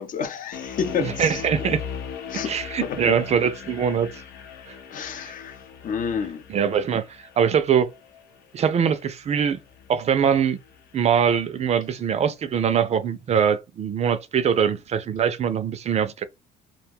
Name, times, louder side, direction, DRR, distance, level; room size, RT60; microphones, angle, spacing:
voice 1, 0.0-1.7 2.3-2.5 2.8-3.2 4.9-6.4, left 7 dB, 50° left, 0.6 m, -30 dB
sound 1, 0.5-11.6, left 7 dB, 90° left, 0.8 m, -40 dB
voice 2, 1.0-1.8 2.5-4.2 4.7-4.8 6.5-7.9 8.5-9.6 9.9-10.6 10.9-16.2, right 7 dB, 40° right, 0.4 m, -22 dB
2.4 x 2.1 x 3.4 m
cardioid pair, 110°, 17 cm